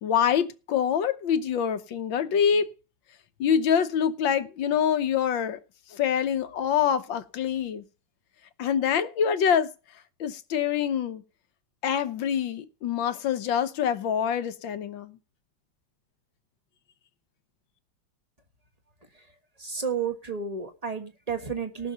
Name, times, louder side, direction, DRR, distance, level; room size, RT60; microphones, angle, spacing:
voice 1, 0.0-2.7 3.4-5.6 5.9-7.8 8.6-9.7 10.2-11.2 11.8-15.2, left 8 dB, 85° left, 1.7 m, -25 dB
voice 2, 19.6-21.9, right 6 dB, 20° right, 1.4 m, -31 dB
18.0 x 6.5 x 5.5 m
omnidirectional pair, 2.0 m